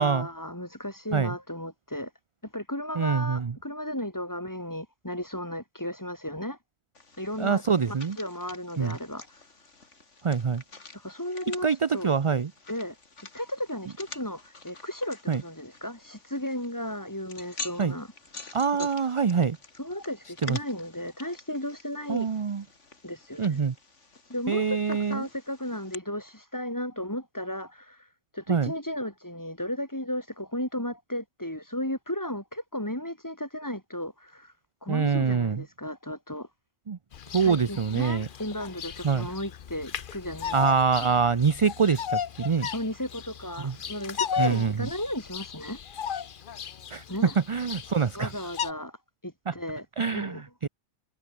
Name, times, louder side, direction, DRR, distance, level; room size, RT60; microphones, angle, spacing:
voice 1, 0.0-2.1 2.4-6.6 7.2-7.6 7.9-9.2 10.9-12.1 12.7-13.0 13.3-18.1 18.8-18.9 19.8-22.3 23.0-23.6 24.3-28.1 28.3-34.5 34.8-36.5 37.3-40.5 40.9-41.1 42.7-45.8 47.1-47.3 48.2-49.0 49.2-50.4, left 1 dB, 15° left, 3.8 m, -34 dB
voice 2, 3.0-3.6 7.4-8.2 8.8-9.0 10.2-10.6 11.6-12.5 15.3-15.4 17.8-17.9 18.5-19.6 20.4-20.6 22.1-22.6 23.4-23.7 24.5-25.2 28.5-28.7 34.9-35.6 36.9-37.0 37.3-38.3 39.0-39.3 40.5-42.7 43.6-43.8 44.4-44.9 46.9-48.3 49.5-49.6 50.0-50.7, right 6 dB, 35° right, 0.6 m, -25 dB
sound 1, 6.9-25.9, left 3 dB, 85° left, 3.3 m, -47 dB
Bird vocalization bird call bird song, 37.1-48.7, left 8 dB, 50° left, 0.9 m, -36 dB
omnidirectional pair, 1.2 m